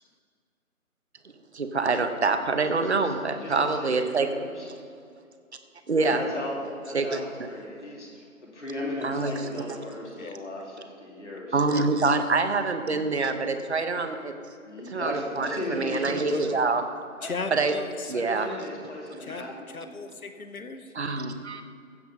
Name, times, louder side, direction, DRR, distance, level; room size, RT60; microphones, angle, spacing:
voice 1, 1.5-4.3 5.9-6.2 6.9-7.2 9.0-9.5 11.5-14.4 14.9-16.8 17.5-17.7 18.1-18.6 20.9-21.6, right 4 dB, 50° right, 8 dB, 0.9 m, -26 dB
voice 2, 2.7-4.7 5.9-6.6 6.8-11.6 14.6-16.3 17.2-17.7 18.1-19.9, left 1 dB, 55° left, -2 dB, 2.8 m, -36 dB
voice 3, 17.2-18.5 19.2-20.9, left 4 dB, 75° left, 8 dB, 1.0 m, -36 dB
15.5 x 5.6 x 5.5 m, 2.3 s
figure-of-eight pair, 160°, 43 cm